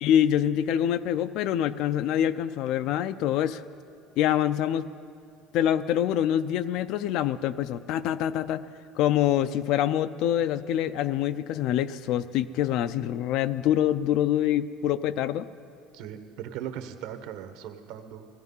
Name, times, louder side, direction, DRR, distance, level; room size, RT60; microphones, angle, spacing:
voice 1, 0.0-3.6 4.2-4.9 5.5-8.7 9.0-15.5, left 11 dB, 50° left, 14 dB, 0.4 m, -25 dB
voice 2, 15.9-18.3, right 9 dB, 65° right, 8 dB, 1.1 m, -38 dB
16.5 x 14.5 x 5.5 m, 2.5 s
cardioid pair, 170°, 0 cm